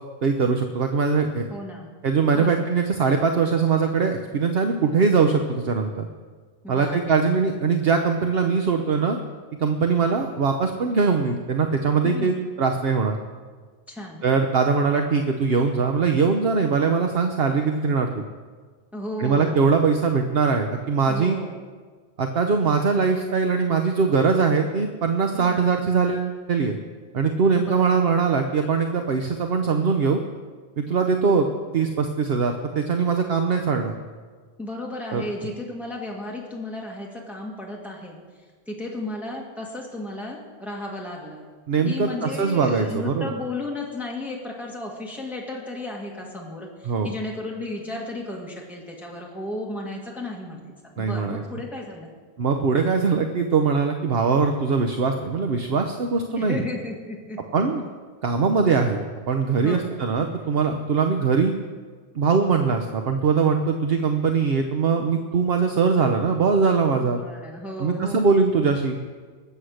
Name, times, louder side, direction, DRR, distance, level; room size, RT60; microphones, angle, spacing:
voice 1, 0.2-1.5 2.0-6.1 6.7-9.2 9.6-13.2 14.2-18.2 19.2-21.4 22.2-26.8 27.1-30.2 30.8-31.5 31.7-33.9 35.1-35.2 41.7-43.3 46.8-47.1 51.0-51.4 52.4-56.6 57.5-57.8 58.2-61.5 62.1-67.2 67.8-69.0, right 5 dB, 65° right, 5 dB, 1.1 m, -22 dB
voice 2, 1.5-1.9 2.3-2.6 6.6-7.0 12.0-12.4 13.9-14.2 18.9-19.7 21.1-21.5 25.3-25.6 27.6-28.0 34.6-38.2 38.7-41.4 41.9-52.1 56.3-57.6 59.6-59.9 67.0-68.4, left 2 dB, ahead, -2 dB, 1.9 m, -34 dB
21.0 x 7.9 x 6.5 m, 1.5 s
omnidirectional pair, 1.1 m